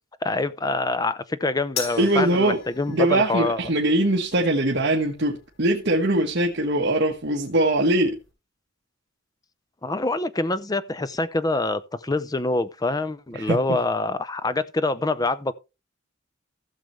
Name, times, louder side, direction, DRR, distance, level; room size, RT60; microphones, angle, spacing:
voice 1, 0.2-3.6 9.8-15.5, left 2 dB, 20° left, 0.6 m, -25 dB
sound 1, 1.8-8.3, left 6 dB, 85° left, 4.1 m, -41 dB
voice 2, 2.0-2.6 2.9-8.2 13.3-13.6, right 1 dB, 55° right, 1.5 m, -22 dB
15.5 x 6.6 x 3.2 m
head